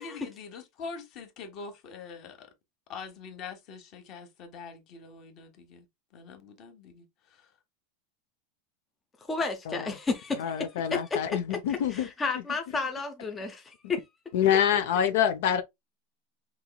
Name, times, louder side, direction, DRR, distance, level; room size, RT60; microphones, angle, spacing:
voice 1, 0.0-2.5 2.9-5.9 6.1-7.5, left 5 dB, 35° left, 1.1 m, -44 dB
voice 2, 9.3-11.4 11.7-14.0, left 4 dB, 10° left, 0.5 m, -32 dB
voice 3, 10.4-12.1 14.3-15.6, left 9 dB, 65° left, 0.6 m, -26 dB
5.3 x 3.0 x 2.3 m
supercardioid pair, 170°, 0 cm